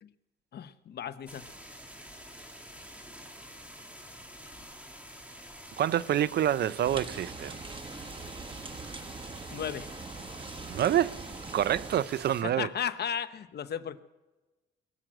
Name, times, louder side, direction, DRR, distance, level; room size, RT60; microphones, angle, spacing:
voice 1, 0.5-1.4 9.5-9.9 12.4-14.0, left 8 dB, 55° left, 0.9 m, -35 dB
many fountains, 1.3-12.4, equal, 5° right, 2.4 m, -48 dB
voice 2, 5.8-7.6 10.7-11.2 11.5-12.7, right 11 dB, 55° right, 0.5 m, -27 dB
sound 1, 6.8-12.0, right 4 dB, 25° right, 1.2 m, -42 dB
22.5 x 7.6 x 7.7 m
cardioid pair, 90°, 20 cm